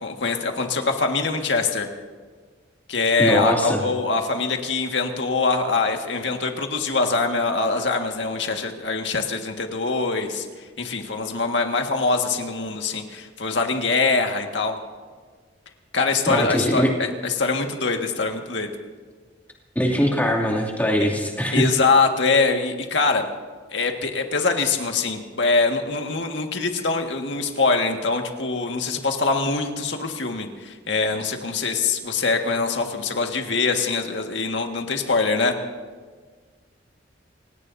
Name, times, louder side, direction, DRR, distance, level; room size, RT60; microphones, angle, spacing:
voice 1, 0.0-1.9 2.9-14.7 15.9-18.7 21.0-21.1 21.5-23.2 23.7-35.6, left 4 dB, 75° left, 3 dB, 1.8 m, -23 dB
voice 2, 3.2-3.8 16.3-16.9 19.7-21.7, equal, 10° left, -1 dB, 2.6 m, -21 dB
28.5 x 17.5 x 2.7 m, 1.5 s
head